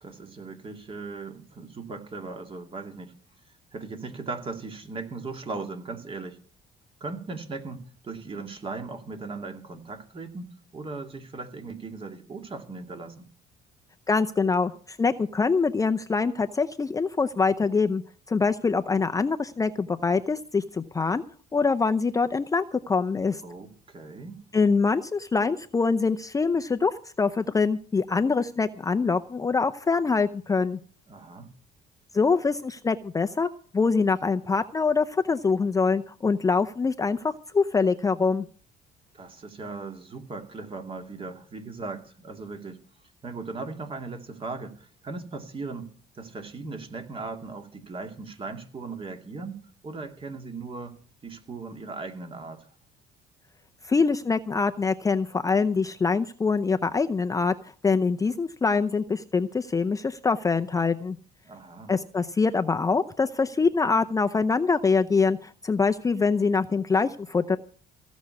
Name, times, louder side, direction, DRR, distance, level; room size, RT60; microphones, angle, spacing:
voice 1, 0.0-3.1 3.7-6.4 7.0-13.3 23.4-24.4 31.1-31.5 39.1-42.8 43.2-51.0 51.2-52.7 61.4-62.0, right 3 dB, 30° right, 2.3 m, -38 dB
voice 2, 14.1-18.0 18.3-21.2 21.5-23.4 24.5-30.8 32.1-33.5 33.7-38.5 53.8-57.5 57.8-61.2 61.9-67.6, left 4 dB, 20° left, 0.6 m, -24 dB
16.0 x 6.2 x 9.5 m
cardioid pair, 110°, 17 cm